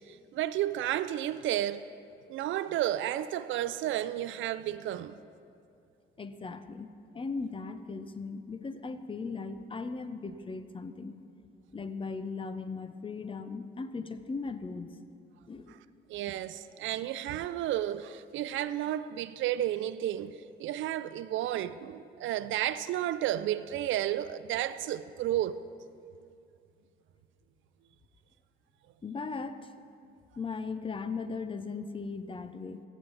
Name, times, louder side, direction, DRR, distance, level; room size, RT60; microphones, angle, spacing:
voice 1, 0.0-1.9 2.3-5.2 15.7-15.8 16.1-25.6, right 12 dB, 75° right, 0.4 m, -32 dB
voice 2, 6.2-11.2 11.7-15.0 15.5-15.8 29.0-29.7 30.4-32.8, left 4 dB, 25° left, 0.6 m, -38 dB
15.0 x 9.0 x 4.0 m
cardioid pair, 90°, 20 cm